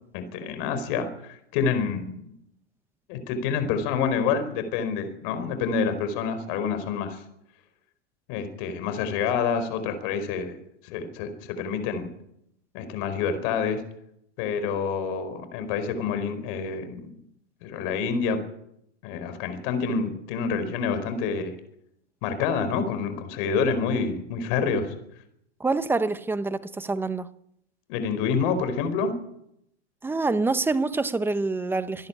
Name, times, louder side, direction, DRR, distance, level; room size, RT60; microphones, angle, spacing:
voice 1, 0.1-2.2 3.1-7.2 8.3-10.6 10.8-11.3 11.6-12.1 12.7-13.8 14.4-17.1 17.6-18.4 19.0-21.5 22.2-24.9 27.9-29.1, left 6 dB, 45° left, 4.7 m, -27 dB
voice 2, 25.6-27.3 30.0-32.1, right 3 dB, 5° right, 0.8 m, -26 dB
26.5 x 10.5 x 9.9 m
hypercardioid pair, 135°, 36 cm